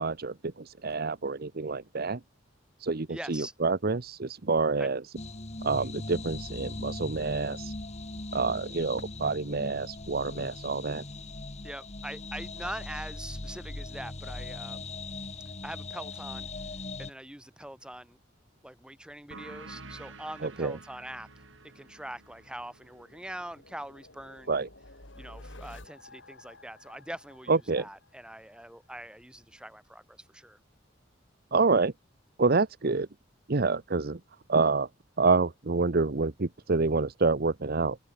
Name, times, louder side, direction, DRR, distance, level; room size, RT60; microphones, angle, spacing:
voice 1, 0.0-2.2 2.8-5.0 5.6-7.7 8.3-11.0 20.4-20.8 24.5-24.7 27.5-27.9 31.5-31.9 32.4-33.1 33.5-34.2 34.5-34.9 35.2-38.0, right 4 dB, 55° right, 0.9 m, -27 dB
voice 2, 3.1-3.5 4.8-4.9 11.6-14.9 15.2-16.5 17.0-18.2 18.6-21.4 21.7-24.6 25.2-30.6, right 1 dB, 5° right, 3.3 m, -43 dB
sound 1, 5.2-17.1, left 2 dB, 35° left, 2.1 m, -40 dB
sound 2, 19.3-24.5, right 3 dB, 85° right, 6.8 m, -50 dB
sound 3, 21.9-28.7, left 1 dB, 70° left, 6.0 m, -52 dB
head